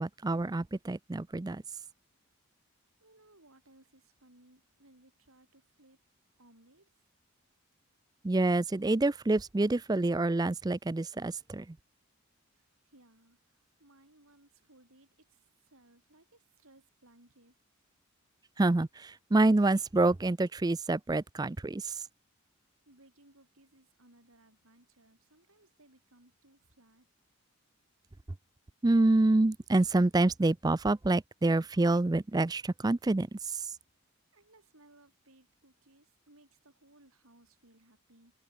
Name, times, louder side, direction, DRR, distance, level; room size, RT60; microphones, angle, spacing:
voice 1, 0.0-1.6 8.2-11.6 18.6-21.9 28.8-33.6, right 2 dB, 15° right, 0.4 m, -27 dB
voice 2, 3.0-6.0 6.4-7.0 12.5-17.6 22.9-27.1 34.3-38.3, right 1 dB, 75° right, 6.3 m, -63 dB
head